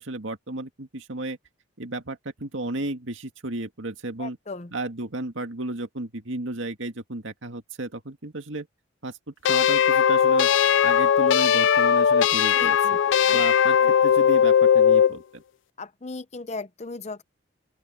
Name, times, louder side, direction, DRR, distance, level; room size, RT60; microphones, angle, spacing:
voice 1, 0.0-1.4 1.8-4.4 4.7-8.7 9.0-10.5 10.8-12.8 13.3-15.4, right 2 dB, 70° right, 2.1 m, -33 dB
voice 2, 4.2-4.7 12.5-13.0 13.2-13.4 13.8-13.9 15.8-17.2, left 3 dB, 35° left, 0.7 m, -37 dB
sound 1, 9.5-15.2, left 8 dB, 70° left, 0.4 m, -19 dB
open air
head